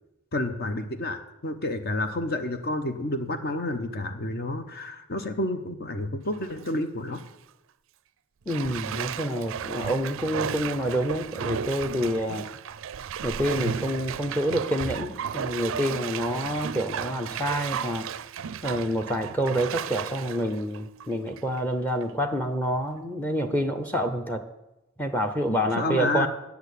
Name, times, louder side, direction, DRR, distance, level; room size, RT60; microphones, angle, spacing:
voice 1, 0.3-7.2 25.8-26.3, left 1 dB, 50° left, 8 dB, 0.9 m, -29 dB
Bathtub (filling or washing), 6.3-6.7 7.2-7.3 8.5-21.6 22.0-22.1, right 7 dB, 65° right, 0.4 m, -34 dB
voice 2, 8.5-12.5 13.2-18.1 18.6-24.4 25.0-26.3, equal, 10° left, 7 dB, 0.7 m, -27 dB
10.5 x 6.9 x 8.3 m, 0.95 s
head